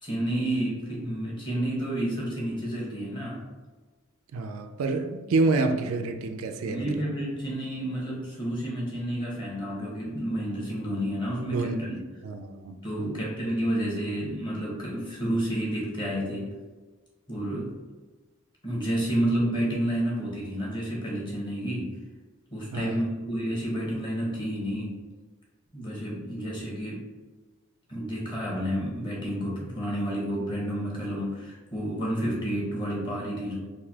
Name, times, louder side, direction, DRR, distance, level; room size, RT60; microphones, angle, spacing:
voice 1, 0.0-3.4 6.6-12.0 12.8-16.5 17.3-17.7 18.6-21.9 22.5-25.0 25.7-27.0 27.9-33.6, right 1 dB, 20° left, 1.1 m, -30 dB
voice 2, 4.3-7.0 11.5-11.8 12.2-13.1 22.7-23.1, right 3 dB, 80° right, 0.4 m, -28 dB
3.9 x 2.6 x 2.8 m
head